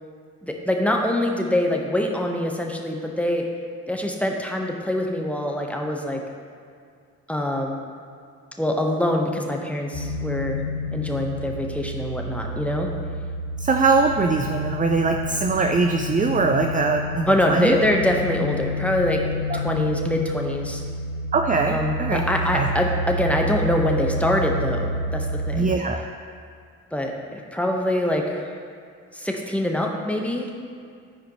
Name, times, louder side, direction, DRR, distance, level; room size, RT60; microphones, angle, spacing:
voice 1, 0.4-3.5 3.9-6.2 7.3-7.9 8.6-10.6 10.9-12.9 17.3-19.2 19.5-20.8 21.7-25.7 26.9-28.5 29.1-30.5, left 1 dB, 5° left, 1 dB, 1.2 m, -24 dB
sound 1, 9.9-25.7, left 1 dB, 70° left, 0.7 m, -29 dB
voice 2, 13.6-17.8 19.5-19.6 21.3-22.2 22.5-22.7 25.5-26.1, right 4 dB, 20° right, 4 dB, 0.5 m, -22 dB
12.5 x 4.9 x 3.1 m, 2.2 s
hypercardioid pair, 45°, 40 cm